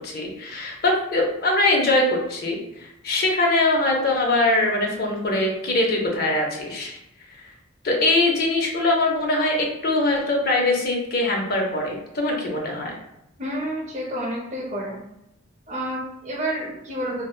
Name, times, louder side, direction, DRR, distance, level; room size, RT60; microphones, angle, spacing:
voice 1, 0.0-7.0 7.8-13.0, left 2 dB, 50° left, 0 dB, 0.5 m, -22 dB
voice 2, 13.4-15.0 15.7-17.3, right 1 dB, 35° right, -4 dB, 0.6 m, -29 dB
2.7 x 2.0 x 2.3 m, 0.86 s
head